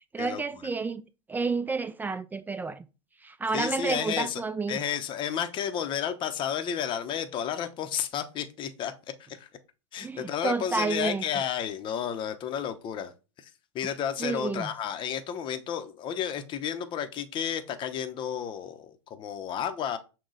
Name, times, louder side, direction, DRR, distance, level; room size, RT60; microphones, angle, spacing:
voice 1, 0.1-1.0 1.3-2.9 3.2-4.8 10.0-11.5 14.2-14.7, right 4 dB, 10° right, 0.3 m, -30 dB
voice 2, 3.5-4.4 4.7-8.9 9.3-9.5 9.9-13.1 13.7-20.0, left 9 dB, 30° left, 0.7 m, -32 dB
6.0 x 2.2 x 3.9 m
hypercardioid pair, 100°, 15 cm